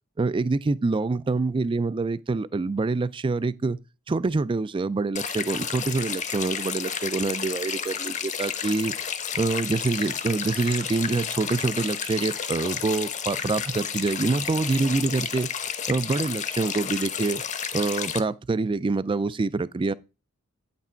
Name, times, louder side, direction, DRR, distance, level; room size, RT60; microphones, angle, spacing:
voice 1, 0.2-3.8 4.1-8.9 9.3-15.5 15.9-17.4 17.7-19.9, right 3 dB, 25° right, 0.3 m, -26 dB
sound 1, 5.1-18.2, left 7 dB, 35° left, 0.8 m, -31 dB
9.2 x 5.9 x 4.4 m
head